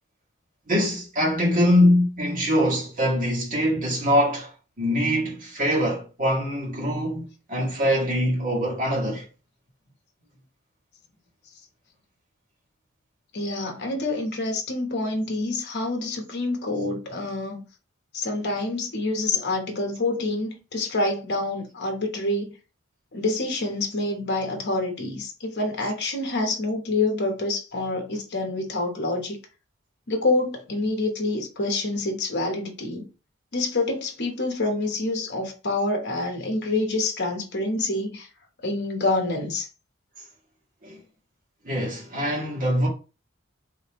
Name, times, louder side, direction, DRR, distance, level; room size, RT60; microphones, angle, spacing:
voice 1, 0.7-4.5 4.8-9.2 40.8-41.0 41.7-42.9, equal, 45° right, 1.8 m, -23 dB
voice 2, 13.3-17.6 18.1-22.5 23.1-29.4 30.1-33.1 33.5-38.3 38.6-39.7, left 2 dB, 55° left, 1.1 m, -27 dB
3.6 x 3.3 x 3.0 m
head